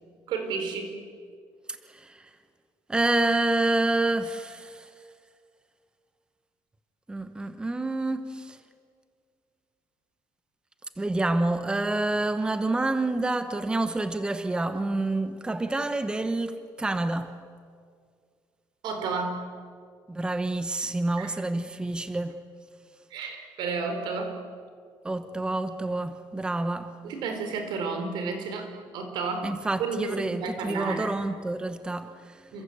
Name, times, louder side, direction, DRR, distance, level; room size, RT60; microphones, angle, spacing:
voice 1, 0.3-1.0 18.8-19.4 21.2-21.4 23.1-24.4 27.0-31.1 32.5-32.6, right 4 dB, 80° right, 4.7 m, -32 dB
voice 2, 1.7-2.3 2.9-4.9 7.1-8.6 11.0-17.3 20.1-22.4 25.0-26.9 29.4-32.4, right 2 dB, 10° right, 1.1 m, -28 dB
28.5 x 25.5 x 8.2 m
cardioid pair, 145°, 8 cm